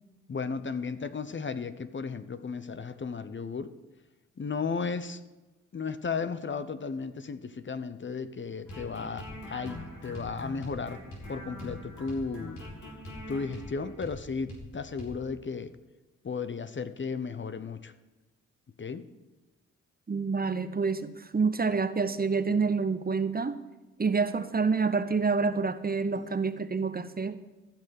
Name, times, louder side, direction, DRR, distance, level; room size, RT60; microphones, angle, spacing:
voice 1, 0.3-3.7 4.4-5.2 5.7-11.0 11.3-12.6 13.3-15.7 16.2-17.9 18.8-19.0, left 5 dB, 40° left, 12 dB, 0.8 m, -34 dB
sound 1, 8.7-14.2 14.5-14.7 15.0-15.1, equal, 80° left, 3.4 m, -43 dB
voice 2, 20.1-23.6 24.0-27.4, right 4 dB, 30° right, 12 dB, 0.9 m, -28 dB
14.5 x 5.5 x 6.5 m, 1.1 s
supercardioid pair, 45°, 30 cm